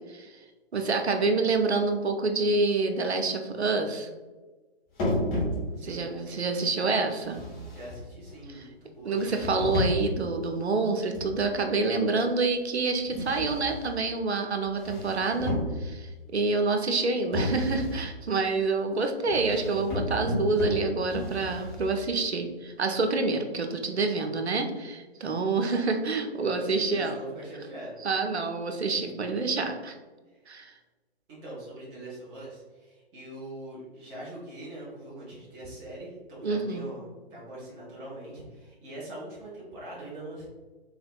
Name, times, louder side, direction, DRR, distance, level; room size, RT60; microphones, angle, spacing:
voice 1, 0.7-4.1 5.8-7.4 9.1-27.2 28.0-30.0 30.5-30.7 36.4-36.9, right 3 dB, 90° right, 5 dB, 0.6 m, -27 dB
sound 1, 5.0-6.0 7.2-8.4 9.1-10.2 11.1-11.6 13.1-14.0 14.6-16.1 17.3-18.1 19.3-22.1, left 1 dB, 20° left, 0.9 m, -32 dB
voice 2, 5.8-6.4 7.7-9.2 25.2-25.4 26.6-27.9 30.3-30.4 31.3-40.5, right 1 dB, 10° right, -6 dB, 0.4 m, -43 dB
3.8 x 3.3 x 2.3 m, 1.3 s
figure-of-eight pair, 130°, 32 cm